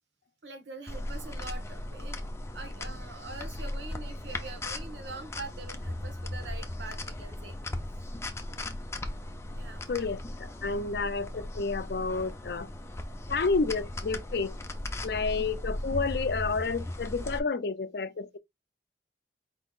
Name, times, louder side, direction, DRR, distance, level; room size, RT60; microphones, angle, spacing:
voice 1, 0.4-2.3 2.5-7.5 7.9-8.0 9.5-9.9, right 3 dB, 85° right, 1.4 m, -44 dB
sound 1, 0.9-17.4, left 1 dB, 15° left, 0.6 m, -37 dB
voice 2, 9.9-12.7 13.3-14.6 15.0-18.4, left 4 dB, 60° left, 0.5 m, -30 dB
4.6 x 4.0 x 2.4 m
head